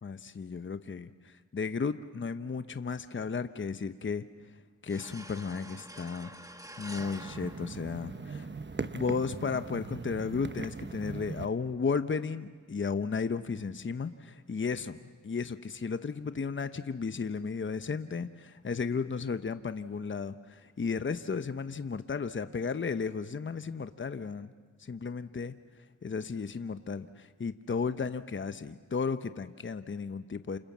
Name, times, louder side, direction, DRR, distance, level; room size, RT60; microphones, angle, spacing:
voice 1, 0.0-4.2 4.8-6.3 6.8-8.5 8.9-24.5 24.8-25.5 26.0-30.6, left 5 dB, 40° left, 11 dB, 1.0 m, -34 dB
sound 1, 4.9-8.5, right 1 dB, 10° right, 1.9 m, -48 dB
sound 2, 6.8-11.5, right 4 dB, 35° right, 1.1 m, -40 dB
28.5 x 27.0 x 7.4 m, 1.4 s
cardioid pair, 60°, 32 cm